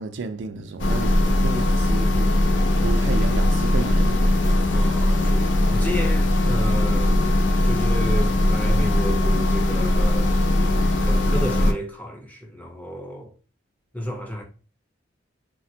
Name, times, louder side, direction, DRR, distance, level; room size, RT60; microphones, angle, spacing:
voice 1, 0.0-4.3, right 4 dB, 75° right, 0.3 m, -33 dB
sound 1, 0.8-11.7, left 1 dB, 75° left, 0.4 m, -20 dB
voice 2, 4.7-7.2 7.6-10.3 10.6-10.8 11.1-13.3 13.9-14.4, equal, 10° left, 0.5 m, -32 dB
3.2 x 2.1 x 2.7 m
head